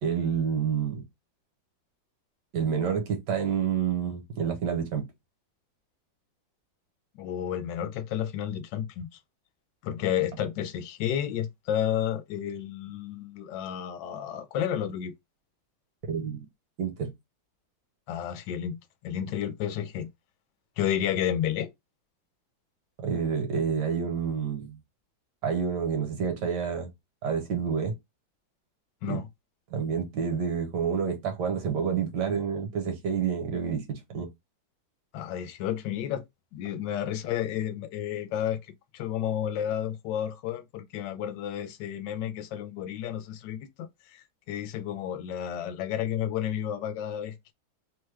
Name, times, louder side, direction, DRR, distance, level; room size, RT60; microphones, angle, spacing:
voice 1, 0.0-1.0 2.5-5.1 16.1-16.4 16.8-17.1 23.0-24.8 25.4-26.9 27.2-27.9 29.0-29.2 29.7-34.3, right 7 dB, 70° right, 1.4 m, -28 dB
voice 2, 7.1-9.1 9.8-15.1 18.1-18.8 19.0-20.1 20.8-21.7 29.0-29.3 35.1-36.2 36.5-38.6 38.9-47.5, left 10 dB, 75° left, 1.2 m, -31 dB
3.3 x 2.2 x 3.1 m
omnidirectional pair, 2.0 m